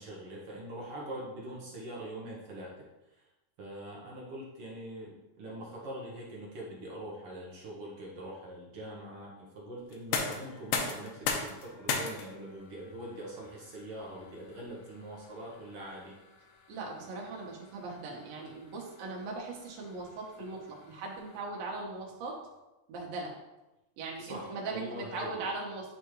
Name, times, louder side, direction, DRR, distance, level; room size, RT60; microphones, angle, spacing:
voice 1, 0.0-2.7 3.2-3.3 3.6-16.1 24.2-25.5, right 1 dB, 65° right, -3 dB, 1.5 m, -43 dB
sound 1, 9.9-21.7, left 5 dB, 85° left, 2.4 m, -40 dB
voice 2, 16.7-22.4 22.9-23.3 24.0-25.9, right 3 dB, 80° right, -2 dB, 2.9 m, -39 dB
10.0 x 3.6 x 3.1 m, 1.0 s
omnidirectional pair, 4.1 m